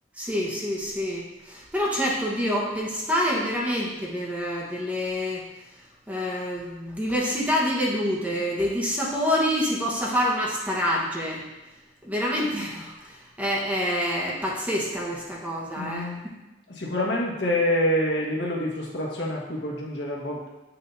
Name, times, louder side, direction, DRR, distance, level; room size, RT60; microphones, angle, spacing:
voice 1, 0.2-5.4 6.1-11.4 12.0-16.1, equal, 10° right, -4 dB, 1.2 m, -27 dB
voice 2, 15.8-16.2 16.7-20.5, left 1 dB, 75° left, -3 dB, 1.5 m, -27 dB
8.4 x 6.1 x 2.7 m, 1.0 s
head